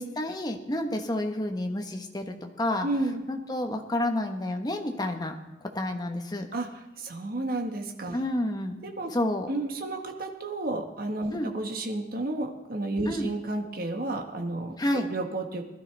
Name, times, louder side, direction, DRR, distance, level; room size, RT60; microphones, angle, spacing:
voice 1, 0.0-2.2 2.6-2.9 3.3-5.3 5.7-6.5 8.1-8.8 9.1-9.5 11.3-11.5 13.0-13.3 14.8-15.1, left 1 dB, 25° left, 4 dB, 1.2 m, -29 dB
voice 2, 2.8-3.2 6.5-6.7 7.0-8.2 8.8-9.1 9.5-15.6, right 2 dB, 55° right, 4 dB, 1.5 m, -31 dB
20.5 x 12.5 x 3.4 m, 1.1 s
head